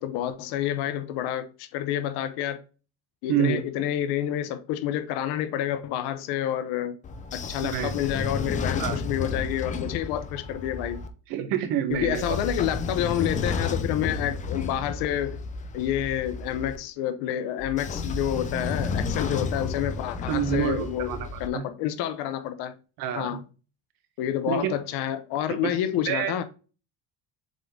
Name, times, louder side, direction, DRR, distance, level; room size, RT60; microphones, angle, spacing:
voice 1, 0.0-2.6 3.2-7.0 7.3-11.0 11.9-15.4 15.7-21.1 21.4-22.7 23.1-23.4 24.2-26.4, left 11 dB, 80° left, 0.8 m, -29 dB
voice 2, 3.3-3.6 7.6-7.9 8.8-9.0 11.3-12.4 20.3-21.6 23.0-23.4 24.5-24.8 25.5-25.8 26.0-26.3, right 10 dB, 60° right, 1.3 m, -28 dB
Train / Sliding door, 7.0-11.1 11.9-16.8 17.6-21.5, left 4 dB, 20° left, 0.5 m, -32 dB
7.4 x 3.6 x 3.8 m
cardioid pair, 175°, 38 cm